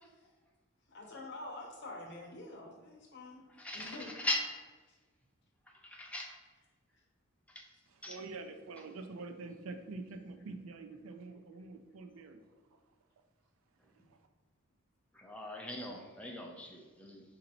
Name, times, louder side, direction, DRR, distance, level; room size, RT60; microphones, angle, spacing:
voice 1, 0.9-3.4 3.7-4.1 4.9-5.0 8.1-8.2, left 2 dB, 55° left, 1 dB, 0.7 m, -47 dB
voice 2, 3.6-4.0 4.2-4.4 5.9-6.3 8.0-8.1 15.2-17.2, left 1 dB, 5° left, 0 dB, 0.5 m, -39 dB
voice 3, 7.9-12.4 14.0-14.2, right 3 dB, 75° right, 7 dB, 0.4 m, -46 dB
5.1 x 2.7 x 2.8 m, 1.3 s
head